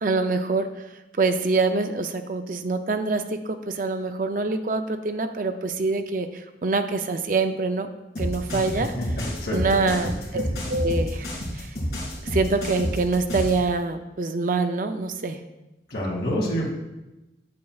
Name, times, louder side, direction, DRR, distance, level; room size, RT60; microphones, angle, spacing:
voice 1, 0.0-0.7 1.2-7.9 8.2-8.9 9.5-11.7 12.3-15.4, right 3 dB, 50° right, 7 dB, 0.5 m, -25 dB
sound 1, 8.2-13.6, equal, 55° left, 2.6 m, -29 dB
voice 2, 9.1-9.6 10.3-10.4 15.9-16.7, equal, 75° left, -3 dB, 2.2 m, -27 dB
8.5 x 7.8 x 2.4 m, 0.99 s
head